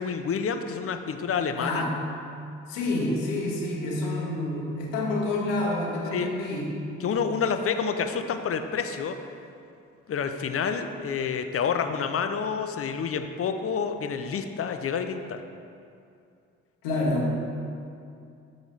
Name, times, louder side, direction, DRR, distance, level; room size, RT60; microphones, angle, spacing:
voice 1, 0.0-1.8 6.1-6.3 7.0-9.2 10.1-15.4, left 6 dB, 40° left, 7 dB, 0.6 m, -28 dB
voice 2, 1.6-2.0 2.7-6.8 16.8-17.4, left 2 dB, 85° left, -2 dB, 0.9 m, -28 dB
6.5 x 3.9 x 5.4 m, 2.5 s
hypercardioid pair, 45°, 36 cm